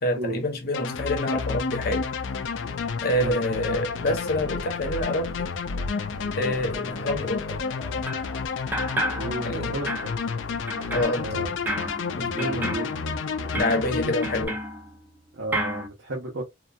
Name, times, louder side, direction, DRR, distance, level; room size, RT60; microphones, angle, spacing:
voice 1, 0.0-2.1 3.0-5.5 6.4-7.6 9.4-9.8 10.9-11.4 12.1-12.7 13.5-14.6, left 1 dB, 55° left, 0.8 m, -27 dB
sound 1, 0.7-14.4, left 5 dB, 75° left, 0.4 m, -30 dB
sound 2, 6.1-14.0, left 3 dB, 5° left, 1.0 m, -48 dB
sound 3, 8.1-8.4 8.7-9.6 9.9-15.2 15.5-15.9, right 1 dB, 10° right, 0.4 m, -33 dB
voice 2, 9.1-10.1 11.1-11.5 12.3-12.9 13.4-13.7 14.0-14.2 15.3-16.4, right 2 dB, 80° right, 0.8 m, -34 dB
2.8 x 2.2 x 2.3 m
head